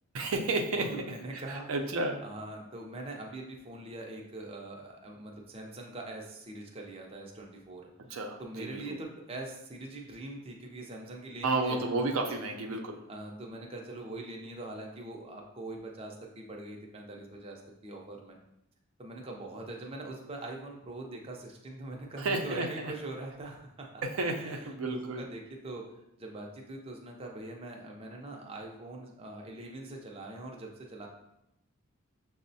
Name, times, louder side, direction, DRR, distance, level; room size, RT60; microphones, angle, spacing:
voice 1, 0.1-0.8 1.3-2.2 8.1-8.8 11.4-13.0 22.2-22.9 24.0-25.3, right 2 dB, 90° right, 3 dB, 0.5 m, -32 dB
voice 2, 0.7-1.6 2.2-7.8 8.4-12.4 13.1-18.4 19.0-24.0 24.4-25.8 26.2-31.1, right 2 dB, 30° right, 0 dB, 0.4 m, -43 dB
6.0 x 2.0 x 2.6 m, 0.83 s
head